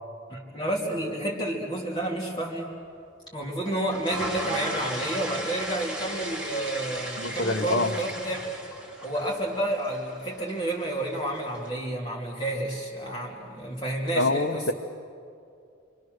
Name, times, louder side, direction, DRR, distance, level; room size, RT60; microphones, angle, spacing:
voice 1, 0.3-2.7 3.3-8.5 9.0-14.7, right 1 dB, 20° left, -4 dB, 2.9 m, -30 dB
sound 1, 3.7-11.7, right 1 dB, 5° right, 4.1 m, -36 dB
voice 2, 7.2-7.9 14.2-14.7, left 2 dB, 65° left, 7 dB, 1.0 m, -25 dB
30.0 x 24.0 x 6.6 m, 2.5 s
head